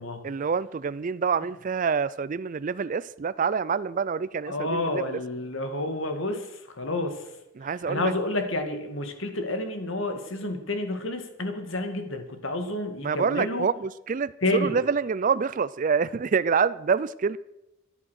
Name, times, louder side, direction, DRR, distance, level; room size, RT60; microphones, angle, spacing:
voice 1, 0.2-5.1 7.6-8.1 13.0-17.4, right 5 dB, 40° right, 0.4 m, -26 dB
voice 2, 4.5-6.5 6.8-7.2 7.9-13.7 14.4-14.8, left 2 dB, 65° left, 2.2 m, -29 dB
13.5 x 10.5 x 6.4 m
head